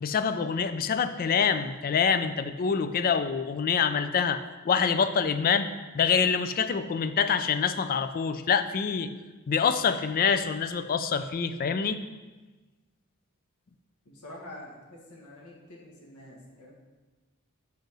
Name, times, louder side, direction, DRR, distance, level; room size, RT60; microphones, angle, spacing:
voice 1, 0.0-5.7 5.9-9.1 9.5-12.0, left 6 dB, 40° left, 11 dB, 0.4 m, -26 dB
voice 2, 14.0-16.7, left 1 dB, 85° left, -2 dB, 1.4 m, -46 dB
5.4 x 5.1 x 6.0 m, 1.2 s
head